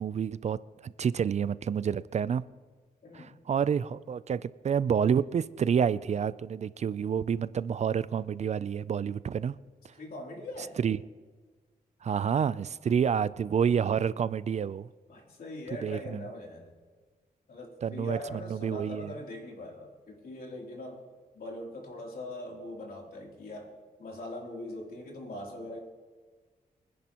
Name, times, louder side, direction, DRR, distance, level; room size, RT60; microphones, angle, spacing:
voice 1, 0.0-2.4 3.1-9.6 10.8-11.0 12.0-14.9 15.8-16.2 17.8-19.1, right 7 dB, 45° right, 17 dB, 0.4 m, -29 dB
voice 2, 3.0-3.4 9.9-10.8 15.1-16.7 17.5-21.0 21.3-23.7 24.0-25.8, left 1 dB, 75° left, -1 dB, 3.1 m, -41 dB
24.0 x 10.5 x 2.9 m, 1.4 s
wide cardioid pair, 115°, 16 cm